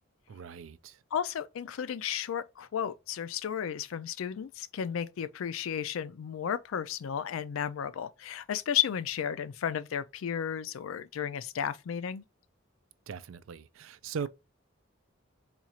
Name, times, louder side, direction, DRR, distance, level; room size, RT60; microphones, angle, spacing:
voice 1, 0.3-1.0 13.1-14.3, right 6 dB, 75° right, 0.4 m, -39 dB
voice 2, 1.1-12.2, left 8 dB, 75° left, 0.4 m, -33 dB
4.2 x 2.4 x 2.8 m
head